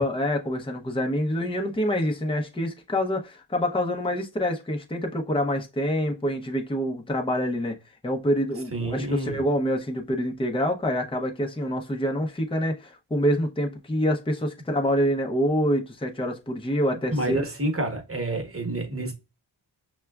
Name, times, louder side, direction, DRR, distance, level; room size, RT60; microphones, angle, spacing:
voice 1, 0.0-7.8 8.0-17.5, equal, 10° left, 0.7 m, -26 dB
voice 2, 8.7-9.4 17.1-19.1, right 1 dB, 30° right, 1.1 m, -28 dB
5.6 x 2.3 x 2.3 m
cardioid pair, 60°, 46 cm